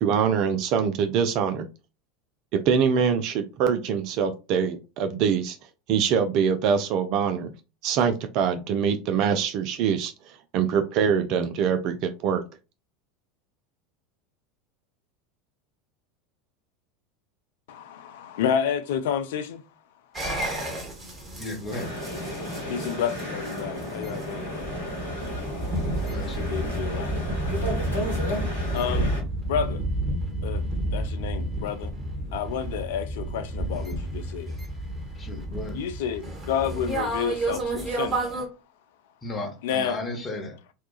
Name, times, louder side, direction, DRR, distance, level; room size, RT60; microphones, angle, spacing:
voice 1, 0.0-1.7 2.5-5.6 5.9-7.5 7.8-10.1 10.5-12.4, right 7 dB, 45° right, 0.3 m, -24 dB
voice 2, 17.7-19.6 22.7-24.7 26.4-27.2 28.7-29.1 29.5-29.8 30.4-30.6 30.9-31.9 32.3-34.5 35.7-38.2 39.6-40.0, left 8 dB, 60° left, 0.3 m, -30 dB
sound 1, 20.1-38.4, right 1 dB, 25° right, 1.2 m, -31 dB
voice 3, 21.4-21.9 25.9-26.5 35.2-35.8 39.2-40.6, left 2 dB, 25° left, 0.8 m, -35 dB
sound 2, 21.7-29.2, left 1 dB, 80° left, 0.8 m, -33 dB
2.8 x 2.2 x 2.3 m
figure-of-eight pair, 80°, 0 cm